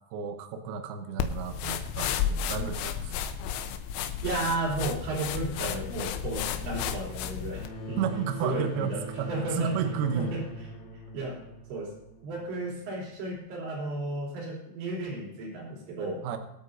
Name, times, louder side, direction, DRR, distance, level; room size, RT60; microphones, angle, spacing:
voice 1, 0.1-3.2 8.0-10.3 16.2-16.4, right 7 dB, 85° right, 7 dB, 2.2 m, -32 dB
sound 1, 1.2-7.7, left 8 dB, 85° left, 3.0 m, -32 dB
voice 2, 4.2-8.0 8.4-9.0 9.3-9.8 10.2-10.7 11.1-11.4 11.7-11.9 12.2-16.2, right 2 dB, 65° right, -3 dB, 5.2 m, -33 dB
sound 2, 7.5-12.9, right 1 dB, 50° left, 5.9 m, -42 dB
23.5 x 8.4 x 2.6 m, 0.87 s
omnidirectional pair, 5.7 m